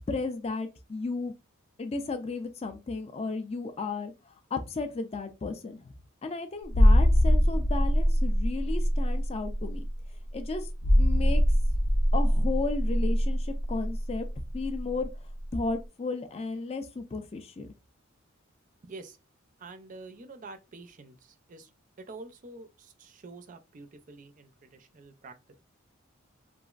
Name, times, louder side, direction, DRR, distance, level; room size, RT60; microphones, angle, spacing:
voice 1, 0.1-1.3 1.8-5.9 6.2-9.8 10.3-10.7 11.0-11.4 12.1-14.3 14.5-15.1 15.5-17.7, left 3 dB, 30° left, 0.3 m, -34 dB
sound 1, 6.7-15.1 15.4-15.5, equal, 85° left, 0.6 m, -23 dB
voice 2, 18.8-19.2 19.6-21.7 22.0-25.5, right 3 dB, 40° right, 0.4 m, -47 dB
3.0 x 2.4 x 2.4 m
head